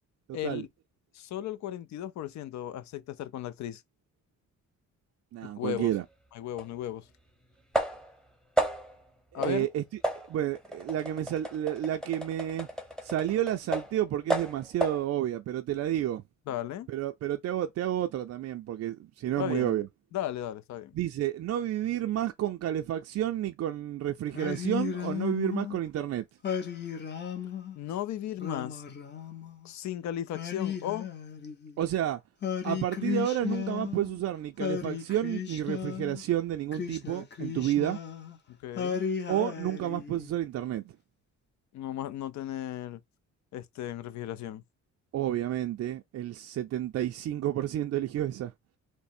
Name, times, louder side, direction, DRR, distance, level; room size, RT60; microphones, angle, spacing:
voice 1, 0.3-0.7 1.1-3.8 5.4-5.9 6.3-7.1 9.3-9.7 16.5-16.9 19.4-19.8 20.1-20.9 27.8-28.8 29.6-31.1 38.5-39.0 41.7-43.0 43.5-44.6, left 11 dB, 65° left, 0.5 m, -35 dB
voice 2, 5.3-6.0 9.3-9.8 10.3-12.7 13.0-16.2 16.9-19.9 20.9-26.3 31.8-32.2 32.6-38.0 39.3-40.9 45.1-48.5, right 12 dB, 55° right, 0.4 m, -30 dB
sound 1, 6.6-6.7 7.7-8.2 8.6-9.0 9.4-9.7 10.0-14.0 14.3-15.1, right 1 dB, ahead, 0.8 m, -32 dB
Singing, 24.3-25.8 26.4-27.8 28.4-29.7 30.3-31.9 32.4-34.2 34.6-36.2 36.7-38.4 38.8-40.4, left 8 dB, 35° left, 0.9 m, -35 dB
3.2 x 2.1 x 4.2 m
cardioid pair, 90°, 30 cm